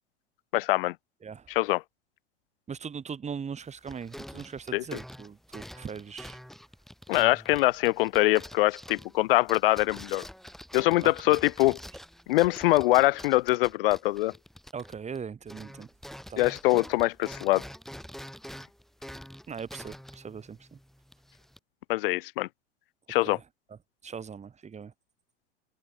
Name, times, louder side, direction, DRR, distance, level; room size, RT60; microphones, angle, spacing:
voice 1, 0.5-0.9 1.5-1.8 4.7-4.8 7.1-10.3 10.7-11.8 12.3-14.3 16.4-17.6 21.9-22.5 23.1-23.4, left 18 dB, 50° left, 0.6 m, -24 dB
voice 2, 1.2-1.5 2.7-6.4 11.0-11.3 14.7-15.9 16.3-16.4 19.5-20.8 23.2-23.4 23.7-24.9, right 6 dB, 20° right, 3.9 m, -40 dB
sound 1, 3.6-15.2 15.5-21.6, equal, ahead, 2.9 m, -46 dB
open air
figure-of-eight pair, 85°, 35 cm